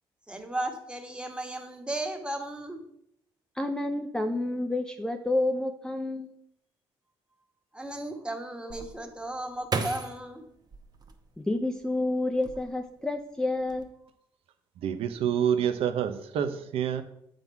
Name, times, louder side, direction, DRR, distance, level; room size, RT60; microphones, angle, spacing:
voice 1, 0.3-2.8 7.7-10.5, right 1 dB, 10° right, 4 dB, 1.3 m, -35 dB
voice 2, 3.6-6.3 11.4-13.9, left 2 dB, 5° left, 5 dB, 0.6 m, -29 dB
sound 1, 8.7-11.8 12.3-13.1 13.4-13.8, right 4 dB, 40° right, 0.9 m, -36 dB
voice 3, 14.8-17.0, right 8 dB, 75° right, 9 dB, 0.7 m, -27 dB
7.2 x 3.9 x 4.6 m, 0.76 s
supercardioid pair, 70°, 10 cm